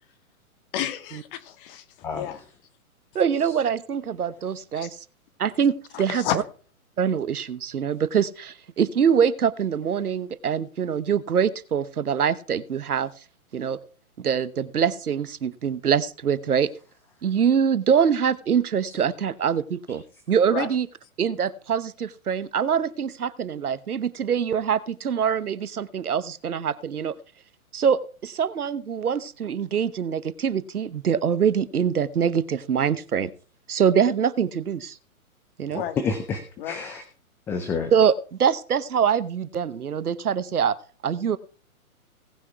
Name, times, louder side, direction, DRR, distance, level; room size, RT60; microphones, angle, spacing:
voice 1, 0.7-1.8 2.1-2.4 4.8-4.9 5.9-6.4 20.5-20.7 35.7-36.0 36.6-36.8, left 10 dB, 40° left, 10 dB, 2.0 m, -31 dB
voice 2, 3.1-5.0 5.4-6.4 7.0-13.1 13.5-13.8 14.2-16.7 17.2-20.9 21.2-27.1 27.7-33.3 33.7-35.0 35.6-35.8 37.9-40.8 41.0-41.4, right 7 dB, 85° right, 16 dB, 1.1 m, -24 dB
voice 3, 35.7-37.0 37.5-37.9, left 5 dB, 5° left, 7 dB, 0.5 m, -29 dB
18.0 x 6.1 x 4.5 m, 0.39 s
hypercardioid pair, 135°, 43 cm